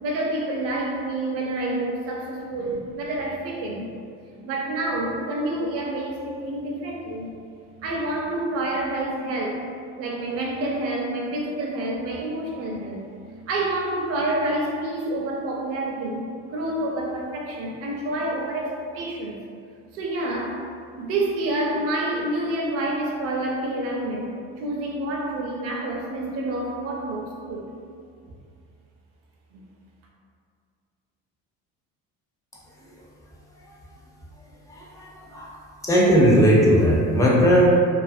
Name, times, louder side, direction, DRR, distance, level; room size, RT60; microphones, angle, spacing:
voice 1, 0.0-3.9 4.4-7.3 7.8-9.6 10.0-13.0 13.5-19.4 19.9-20.6 21.0-27.7 29.5-29.6, right 1 dB, 50° right, -2 dB, 0.5 m, -28 dB
voice 2, 34.7-35.6 35.8-37.6, equal, 10° left, -5 dB, 0.4 m, -18 dB
2.5 x 2.4 x 2.6 m, 2.3 s
cardioid pair, 130°, 32 cm